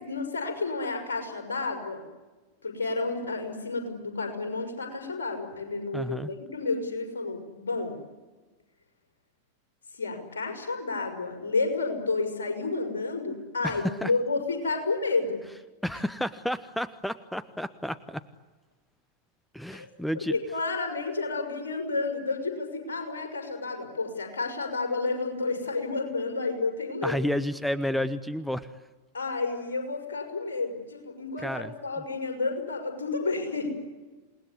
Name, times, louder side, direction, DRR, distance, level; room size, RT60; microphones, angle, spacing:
voice 1, 0.0-2.0 2.6-8.0 9.9-15.5 19.7-19.9 20.1-27.2 29.1-33.7, left 3 dB, 70° left, 4 dB, 6.2 m, -31 dB
voice 2, 5.9-6.3 13.6-14.1 15.8-18.2 19.5-20.4 27.0-28.7 31.4-31.7, left 1 dB, ahead, 15 dB, 0.9 m, -31 dB
28.0 x 20.0 x 9.7 m, 1.2 s
figure-of-eight pair, 90°, 0 cm